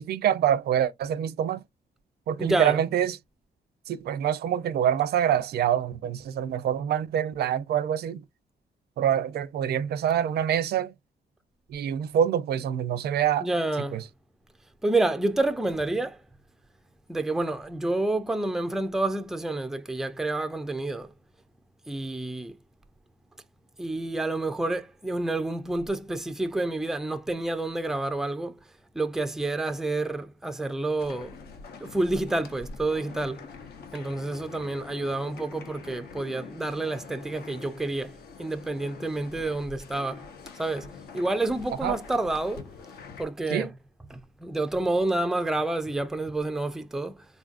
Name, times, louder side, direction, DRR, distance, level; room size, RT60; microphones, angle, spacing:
voice 1, 0.0-1.6 2.3-3.2 3.9-8.2 9.0-10.9 11.7-13.5 13.9-14.0 41.8-42.0 43.5-43.7, right 9 dB, 75° right, 0.5 m, -26 dB
voice 2, 2.4-2.8 13.4-14.0 14.8-16.2 17.1-21.1 21.9-22.6 23.8-28.6 28.9-31.4 31.8-33.5 33.9-40.2 40.5-42.7 43.2-43.7 44.1-47.3, right 2 dB, 5° right, 0.3 m, -29 dB
sound 1, 31.0-43.3, left 5 dB, 75° left, 0.7 m, -45 dB
3.8 x 2.5 x 2.4 m
wide cardioid pair, 160°, 17 cm